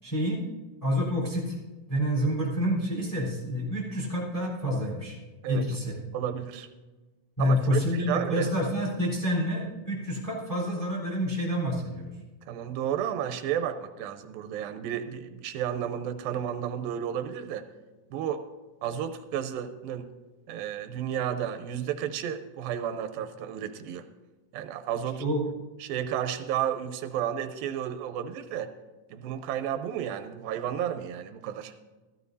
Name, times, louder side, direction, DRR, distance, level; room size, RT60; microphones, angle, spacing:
voice 1, 0.0-0.5 0.8-1.6 1.9-5.2 5.5-6.0 7.4-12.1 25.2-25.4, equal, 5° left, -4 dB, 3.2 m, -28 dB
voice 2, 6.1-6.7 7.4-8.5 12.5-17.6 18.1-18.4 18.8-20.1 20.5-24.1 24.5-25.2 25.8-28.7 29.1-31.7, right 9 dB, 90° right, 9 dB, 2.5 m, -32 dB
16.0 x 14.0 x 2.7 m, 1.2 s
omnidirectional pair, 4.1 m